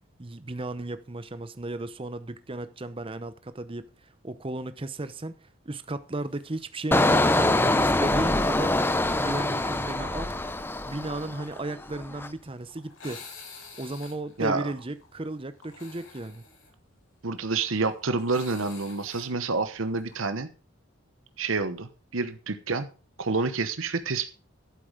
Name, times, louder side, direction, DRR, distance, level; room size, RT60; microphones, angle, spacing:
voice 1, 0.2-3.9 4.2-5.4 5.6-10.3 10.9-13.2 13.7-16.4, right 2 dB, 25° right, 0.8 m, -35 dB
sound 1, 6.3-6.6 6.9-7.0 8.2-8.4 11.5-20.3, left 4 dB, 80° left, 4.6 m, -49 dB
Engine, 6.9-11.6 11.9-12.3, left 2 dB, 10° left, 0.6 m, -24 dB
voice 2, 17.2-20.5 21.4-22.9 23.2-24.3, right 3 dB, 75° right, 1.0 m, -28 dB
11.5 x 8.2 x 5.0 m
head